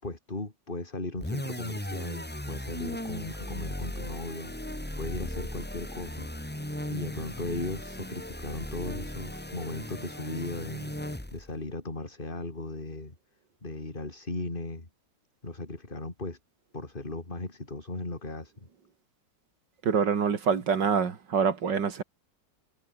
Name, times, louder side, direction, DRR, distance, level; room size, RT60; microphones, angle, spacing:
voice 1, 0.0-4.5 5.0-6.3 6.9-10.9 11.3-13.2 13.6-14.9 15.4-16.4 16.7-18.7, left 2 dB, 30° left, 3.8 m, -37 dB
sound 1, 1.2-11.6, left 1 dB, 5° left, 1.8 m, -37 dB
voice 2, 19.8-22.0, right 6 dB, 75° right, 2.6 m, -26 dB
omnidirectional pair, 1.9 m